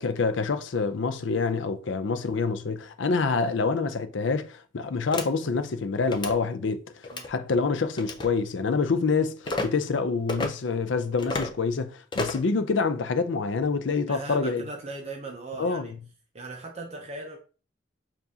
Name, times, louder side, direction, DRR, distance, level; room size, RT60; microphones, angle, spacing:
voice 1, 0.0-6.8 7.3-14.6 15.6-16.0, left 4 dB, 70° left, 0.5 m, -26 dB
sound 1, 5.1-5.3 6.0-6.3 7.0-7.3 8.0-8.3 9.4-9.7 10.3-10.5 11.2-11.5 12.1-12.5, left 2 dB, 25° left, 0.5 m, -30 dB
voice 2, 14.1-15.9 16.3-17.4, right 3 dB, 35° right, 0.6 m, -38 dB
6.9 x 2.5 x 2.7 m
head